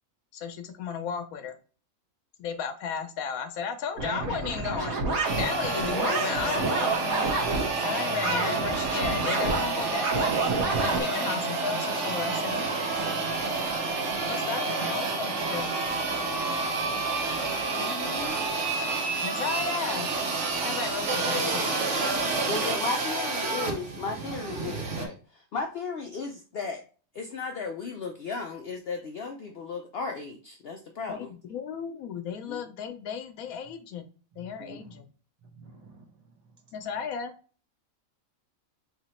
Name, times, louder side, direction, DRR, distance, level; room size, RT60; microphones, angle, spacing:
voice 1, 0.3-1.5 2.4-5.0 5.3-7.3 7.8-10.4 10.8-13.0 14.3-15.9 19.2-20.1 20.6-21.9 31.1-34.1 34.4-35.1 36.7-37.3, left 6 dB, 85° left, 8 dB, 1.0 m, -34 dB
sound 1, 4.0-7.7 8.2-11.0, right 3 dB, 90° right, 1.5 m, -29 dB
sound 2, 5.2-25.1, right 3 dB, 65° right, 1.0 m, -29 dB
voice 2, 17.7-18.4 22.5-26.8 27.1-31.3 32.5-32.6 34.6-34.8, left 4 dB, 65° left, 4 dB, 0.6 m, -35 dB
voice 3, 34.4-35.0 35.5-36.0, right 3 dB, 35° right, 2 dB, 0.8 m, -51 dB
3.4 x 2.9 x 4.2 m, 0.39 s
omnidirectional pair, 1.4 m